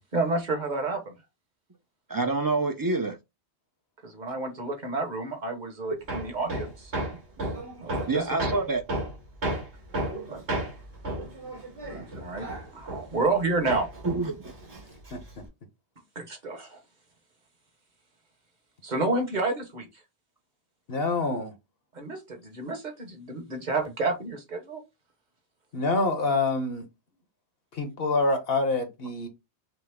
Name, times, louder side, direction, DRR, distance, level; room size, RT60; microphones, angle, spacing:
voice 1, 0.1-1.1 4.0-6.9 7.8-8.2 10.3-10.4 11.9-12.5 12.7-13.9 16.1-16.8 18.8-19.9 21.9-24.8, right 3 dB, 45° right, 1.3 m, -30 dB
voice 2, 2.1-3.2 8.1-8.8 14.0-14.4, right 3 dB, 25° right, 0.5 m, -26 dB
Hammer, 6.1-13.4 13.7-15.4, right 1 dB, 80° right, 2.1 m, -33 dB
voice 3, 20.9-21.5 25.7-26.8 27.7-29.3, left 3 dB, 60° left, 1.2 m, -26 dB
6.0 x 2.0 x 3.5 m
omnidirectional pair, 1.1 m